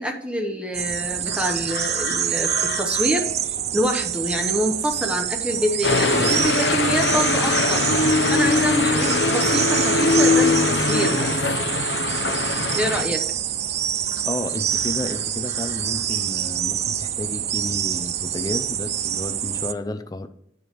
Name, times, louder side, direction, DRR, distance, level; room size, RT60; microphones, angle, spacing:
voice 1, 0.0-7.8 8.3-11.3 12.7-13.2, equal, 5° right, 4 dB, 0.8 m, -26 dB
sound 1, 0.7-19.7, right 10 dB, 40° right, 0.4 m, -26 dB
sound 2, 1.2-11.3 11.5-13.5 14.1-16.3 17.5-17.7 18.2-18.7 18.9-19.2, left 4 dB, 60° left, 1.0 m, -40 dB
sound 3, 5.8-13.0, left 3 dB, 80° left, 0.7 m, -21 dB
voice 2, 14.2-20.3, left 2 dB, 20° left, 8 dB, 0.5 m, -31 dB
9.4 x 4.8 x 5.1 m, 0.74 s
head